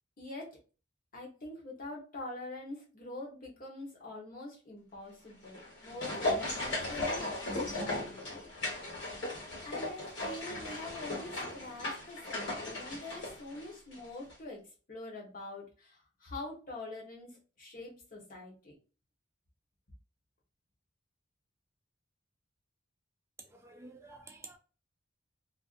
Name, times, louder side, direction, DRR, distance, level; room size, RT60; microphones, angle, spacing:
voice 1, 0.2-0.6 1.1-8.9 9.6-14.6 14.9-18.7, left 2 dB, 45° left, 1.1 m, -45 dB
sound 1, 5.4-14.0 14.3-14.4, left 2 dB, 65° left, 1.4 m, -37 dB
voice 2, 23.5-24.6, right 2 dB, 15° right, 0.4 m, -51 dB
2.5 x 2.3 x 2.5 m
head